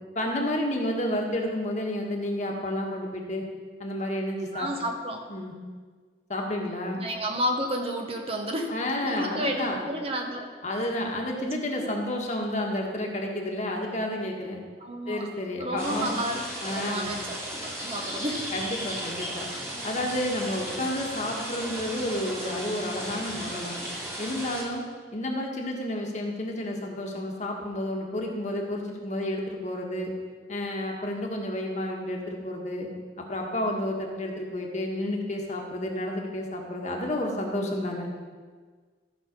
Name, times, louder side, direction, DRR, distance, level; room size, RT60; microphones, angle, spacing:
voice 1, 0.1-3.4 3.8-4.7 5.3-5.5 6.3-7.0 8.7-9.8 10.6-14.6 15.1-16.2 16.6-17.1 18.5-19.5 19.8-23.8 24.2-30.1 30.5-32.9 33.3-38.1, left 1 dB, 40° left, 0 dB, 1.5 m, -30 dB
voice 2, 4.5-5.2 7.0-8.7 9.0-10.5 11.7-11.9 14.8-15.3 15.6-18.5, equal, 35° right, 2 dB, 1.1 m, -31 dB
sound 1, 15.8-24.6, equal, 15° right, 2.1 m, -35 dB
14.0 x 5.7 x 5.3 m, 1.5 s
head